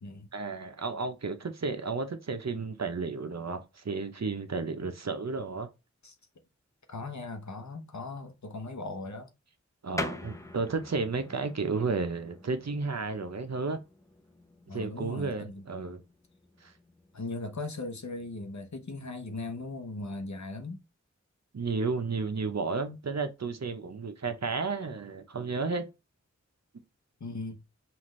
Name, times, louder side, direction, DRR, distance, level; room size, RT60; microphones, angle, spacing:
voice 1, 0.3-5.7 9.8-13.8 14.7-16.0 16.6-16.7 21.5-25.8, right 4 dB, 60° right, 0.8 m, -32 dB
voice 2, 6.9-9.3 14.7-15.6 17.1-20.8 27.2-27.6, left 2 dB, 70° left, 0.9 m, -38 dB
sound 1, 10.0-20.1, left 2 dB, 10° left, 0.6 m, -45 dB
5.6 x 2.5 x 3.1 m
wide cardioid pair, 60°, 29 cm